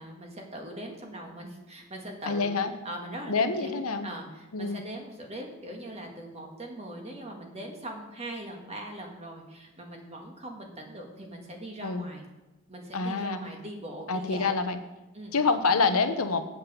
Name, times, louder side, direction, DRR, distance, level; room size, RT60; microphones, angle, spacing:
voice 1, 0.0-2.6 2.9-12.2 12.7-14.6 15.1-15.4, right 1 dB, 30° right, 1 dB, 1.7 m, -41 dB
voice 2, 2.3-2.7 3.3-4.1 4.5-4.8 11.8-12.1 12.9-13.4 14.1-14.8 15.3-16.4, left 4 dB, 90° left, 8 dB, 0.9 m, -26 dB
7.9 x 7.4 x 6.8 m, 1.1 s
head